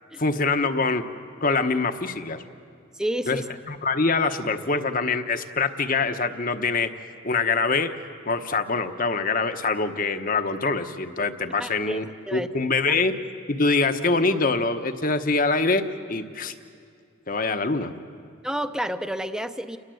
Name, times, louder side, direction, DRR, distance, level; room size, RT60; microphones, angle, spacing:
voice 1, 0.2-1.0 1.4-2.4 3.3-3.4 3.7-6.9 7.2-7.9 8.3-12.1 12.3-13.1 13.5-16.5 17.3-17.9, left 3 dB, 45° left, 8 dB, 1.1 m, -24 dB
voice 2, 3.0-3.5 11.6-12.0 12.3-12.5 18.4-19.8, right 1 dB, 5° right, 9 dB, 0.8 m, -29 dB
29.5 x 22.0 x 7.9 m, 2.3 s
head